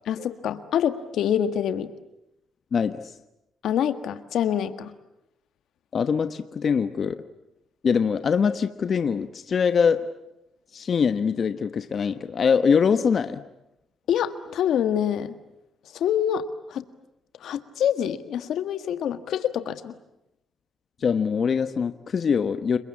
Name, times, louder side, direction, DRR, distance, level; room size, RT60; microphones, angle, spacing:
voice 1, 0.1-1.9 3.6-4.9 14.1-15.3 15.9-16.8 17.4-19.9, left 9 dB, 75° left, 11 dB, 1.6 m, -26 dB
voice 2, 2.7-3.0 5.9-7.2 7.8-10.0 10.7-13.4 21.0-22.8, left 6 dB, 50° left, 10 dB, 1.2 m, -23 dB
29.5 x 22.0 x 8.6 m, 0.86 s
cardioid pair, 90°, 0 cm